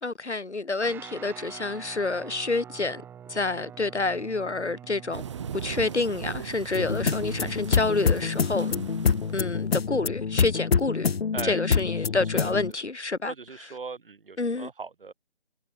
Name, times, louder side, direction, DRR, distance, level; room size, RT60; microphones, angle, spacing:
voice 1, 0.0-3.0 3.3-5.2 5.5-8.7 9.3-11.1 11.4-13.3 14.4-14.7, left 3 dB, 80° left, 5.2 m, -28 dB
Guitar, 0.8-10.6, right 9 dB, 5° right, 6.7 m, -47 dB
sound 1, 5.1-9.6, right 8 dB, 25° right, 2.2 m, -38 dB
sound 2, 6.7-12.7, left 5 dB, 60° left, 0.9 m, -26 dB
voice 2, 12.0-12.5 13.3-15.1, right 4 dB, 55° right, 6.5 m, -39 dB
figure-of-eight pair, 165°, 33 cm